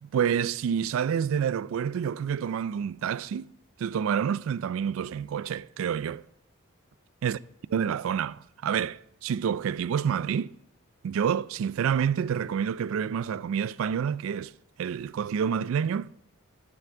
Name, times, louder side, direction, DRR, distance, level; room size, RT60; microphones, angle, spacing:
voice 1, 0.0-3.5 3.8-6.2 7.2-7.4 7.7-10.5 11.0-14.5 14.8-16.1, right 7 dB, 75° right, 0.3 m, -28 dB
9.0 x 5.9 x 6.8 m
head